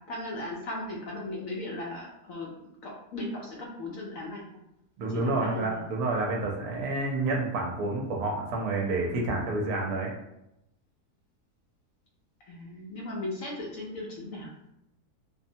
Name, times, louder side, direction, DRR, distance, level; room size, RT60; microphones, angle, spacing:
voice 1, 0.0-4.4 5.1-5.9 12.4-14.5, left 2 dB, 70° left, -3 dB, 0.9 m, -37 dB
voice 2, 5.0-10.1, right 2 dB, 75° right, 0 dB, 1.0 m, -29 dB
2.8 x 2.1 x 2.7 m, 0.85 s
omnidirectional pair, 1.7 m